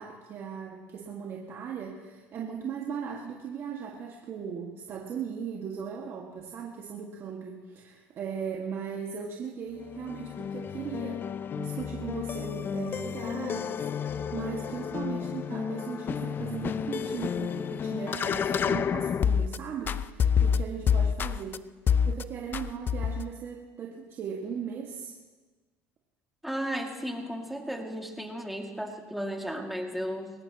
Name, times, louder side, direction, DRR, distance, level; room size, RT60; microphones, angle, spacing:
voice 1, 0.0-11.3 11.6-21.6 22.0-25.1, right 7 dB, 45° right, -1 dB, 1.9 m, -38 dB
sound 1, 9.8-19.6 19.9-21.6 21.9-22.2 22.5-23.3, left 7 dB, 35° left, 0.5 m, -29 dB
voice 2, 26.4-30.3, equal, ahead, 2 dB, 2.3 m, -34 dB
21.5 x 18.0 x 3.0 m, 1.3 s
supercardioid pair, 90°, 6 cm